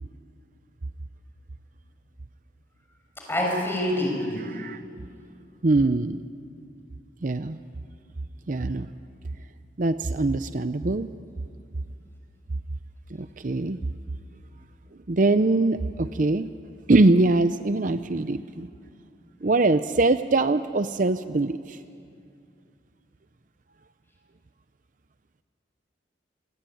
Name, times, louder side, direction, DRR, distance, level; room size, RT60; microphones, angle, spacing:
voice 1, 3.3-4.5, left 1 dB, 10° left, 0 dB, 6.5 m, -26 dB
voice 2, 5.6-6.2 7.2-7.6 8.5-8.9 9.8-11.1 13.2-13.8 15.1-16.5 16.9-18.7 19.4-21.8, right 2 dB, 45° right, 11 dB, 0.6 m, -22 dB
27.0 x 22.0 x 9.2 m, 2.4 s
head